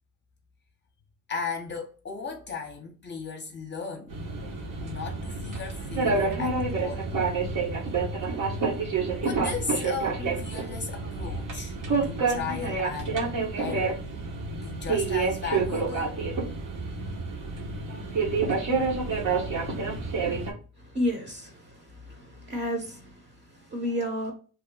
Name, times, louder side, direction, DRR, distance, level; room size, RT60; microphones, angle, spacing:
voice 1, 1.3-4.2 4.8-7.1 9.2-11.7 12.0-14.0 14.5-16.2, left 5 dB, 35° left, 0.6 m, -36 dB
sound 1, 4.1-20.5, right 4 dB, 70° right, 1.1 m, -28 dB
voice 2, 20.9-21.5 22.1-23.1 23.7-24.3, equal, 35° right, 0.8 m, -30 dB
2.8 x 2.1 x 3.7 m
cardioid pair, 105°, 33 cm